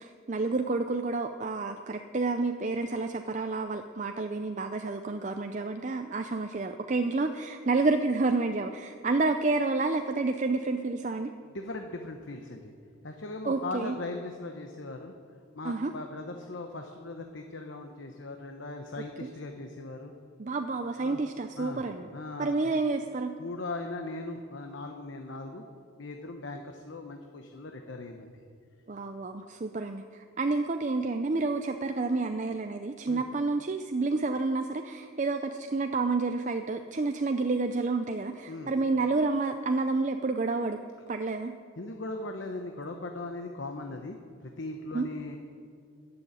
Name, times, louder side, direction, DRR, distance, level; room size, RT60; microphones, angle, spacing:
voice 1, 0.0-11.3 13.5-14.0 15.6-15.9 19.2-19.3 20.4-22.1 22.4-23.3 28.9-40.8 41.1-41.5 44.9-45.1, right 3 dB, 35° right, 6 dB, 0.5 m, -29 dB
voice 2, 11.5-12.7 13.0-15.1 15.5-20.1 21.0-21.2 21.6-21.8 22.1-22.7 23.4-25.6 26.0-28.3 33.1-33.2 38.5-38.7 41.8-44.2 44.6-45.4, left 2 dB, 65° left, 4 dB, 1.0 m, -39 dB
15.0 x 7.0 x 9.7 m, 2.4 s
head